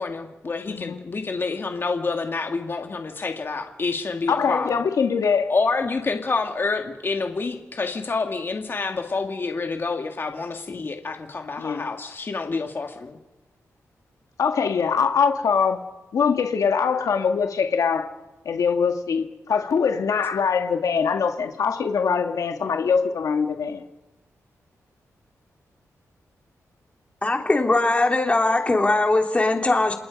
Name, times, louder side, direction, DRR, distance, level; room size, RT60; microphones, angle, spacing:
voice 1, 0.0-4.7 5.5-13.2, left 4 dB, 40° left, 2.1 m, -28 dB
voice 2, 0.7-1.0 4.3-5.5 11.6-11.9 14.4-15.8 16.1-18.1 18.5-23.8, left 6 dB, 85° left, 1.9 m, -23 dB
voice 3, 27.2-29.9, left 2 dB, 20° left, 3.0 m, -20 dB
28.0 x 27.5 x 5.3 m
wide cardioid pair, 120°, 6 cm